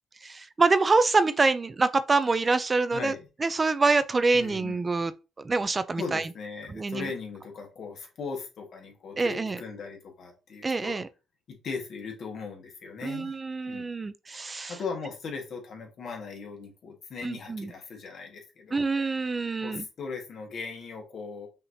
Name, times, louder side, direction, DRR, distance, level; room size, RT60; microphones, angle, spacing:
voice 1, 0.2-3.1 3.4-5.1 5.4-6.3 6.7-7.1 9.2-9.6 10.6-11.1 13.0-14.7 17.2-17.7 18.7-19.8, right 3 dB, 30° right, 0.4 m, -25 dB
voice 2, 2.9-3.3 4.3-4.8 6.0-11.0 11.5-13.4 13.7-13.9 14.7-18.8 19.6-21.5, left 4 dB, 60° left, 1.5 m, -38 dB
5.6 x 2.9 x 2.7 m
cardioid pair, 90°, 0 cm